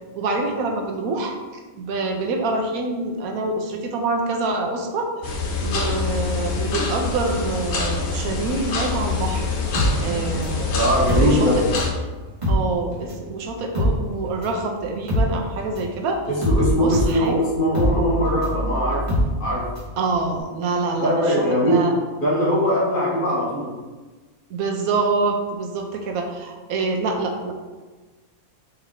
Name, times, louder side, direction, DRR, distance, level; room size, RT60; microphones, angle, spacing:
voice 1, 0.2-1.3 1.8-5.1 5.6-10.7 11.2-11.7 12.5-16.2 16.7-17.3 20.0-21.9 24.5-27.5, right 3 dB, 80° right, 2 dB, 1.1 m, -26 dB
sound 1, 5.2-11.9, left 4 dB, 85° left, 1.2 m, -25 dB
sound 2, 9.8-12.0 12.3-20.0 20.3-20.4, equal, 30° right, 1.5 m, -23 dB
voice 2, 10.7-11.5 16.4-19.1 19.4-19.7 21.0-21.8 22.2-23.7, equal, 40° left, -5 dB, 1.0 m, -21 dB
4.3 x 3.0 x 3.7 m, 1.3 s
omnidirectional pair, 1.5 m